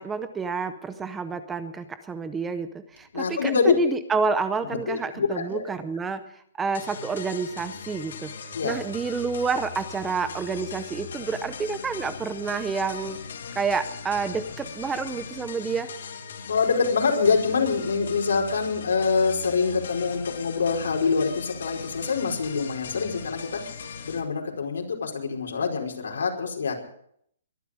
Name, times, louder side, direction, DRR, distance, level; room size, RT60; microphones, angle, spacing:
voice 1, 0.0-6.2 6.6-8.3 8.6-13.2 13.6-15.9, right 5 dB, 5° right, 12 dB, 0.6 m, -29 dB
voice 2, 3.1-3.7 4.9-5.6 8.5-8.7 16.5-23.6 24.0-26.8, left 5 dB, 80° left, 1 dB, 4.8 m, -25 dB
sound 1, 6.7-24.2, left 6 dB, 60° left, 3.0 m, -39 dB
22.0 x 11.5 x 5.1 m, 0.68 s
hypercardioid pair, 175°, 0 cm